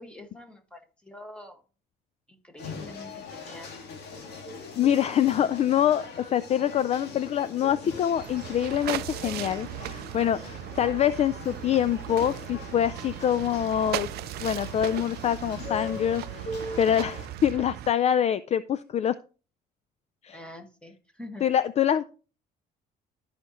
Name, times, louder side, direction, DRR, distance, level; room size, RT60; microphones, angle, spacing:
voice 1, 0.0-1.6 2.3-3.7 20.3-21.4, left 1 dB, 5° left, 5 dB, 1.6 m, -45 dB
sound 1, 2.6-17.3, left 3 dB, 80° left, 2.0 m, -41 dB
voice 2, 4.8-14.1 14.4-16.2 16.8-19.1 20.2-20.4 21.4-22.0, left 10 dB, 40° left, 15 dB, 0.4 m, -25 dB
sound 2, 8.2-17.9, right 15 dB, 70° right, 0.4 m, -37 dB
13.5 x 5.0 x 3.0 m, 0.35 s
cardioid pair, 110°, 17 cm